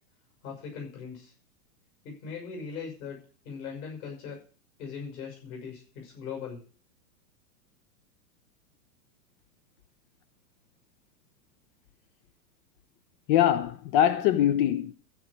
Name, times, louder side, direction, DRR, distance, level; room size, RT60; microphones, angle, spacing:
voice 1, 0.4-1.3 2.0-3.2 3.4-4.4 4.8-6.6, left 6 dB, 60° left, 6.1 m, -39 dB
voice 2, 13.3-14.9, left 11 dB, 35° left, 0.6 m, -23 dB
15.0 x 5.0 x 7.1 m
hypercardioid pair, 125°, 48 cm